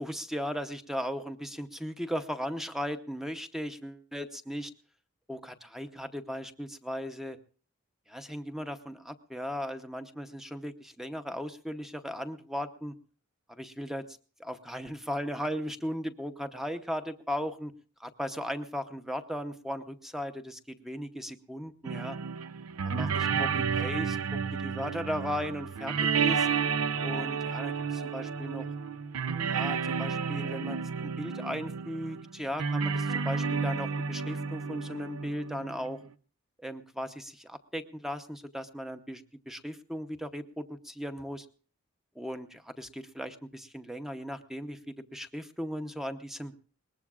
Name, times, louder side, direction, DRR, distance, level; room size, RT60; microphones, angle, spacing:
voice 1, 0.0-4.7 5.3-7.4 8.1-12.9 13.5-17.7 18.0-22.2 22.8-24.2 24.6-26.5 27.0-28.6 29.5-36.0 36.6-41.5 42.2-46.5, equal, ahead, 8 dB, 0.7 m, -37 dB
sound 1, 21.8-36.0, right 6 dB, 90° right, 0.6 m, -31 dB
22.0 x 19.5 x 2.4 m, 0.40 s
head